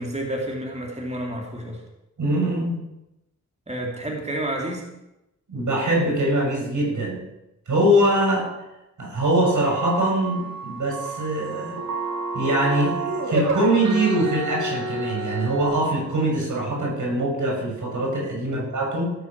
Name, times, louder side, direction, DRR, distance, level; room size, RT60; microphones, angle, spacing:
voice 1, 0.0-1.8 3.7-4.8 18.5-18.7, right 1 dB, 20° right, -1 dB, 2.9 m, -30 dB
voice 2, 2.2-2.8 5.5-7.2 7.7-8.5 9.0-11.8 12.3-19.1, right 1 dB, 85° right, 0 dB, 6.3 m, -23 dB
sound 1, 9.7-15.7, right 2 dB, 65° right, 2.9 m, -29 dB
17.5 x 6.9 x 7.4 m, 0.92 s
wide cardioid pair, 115°, 30 cm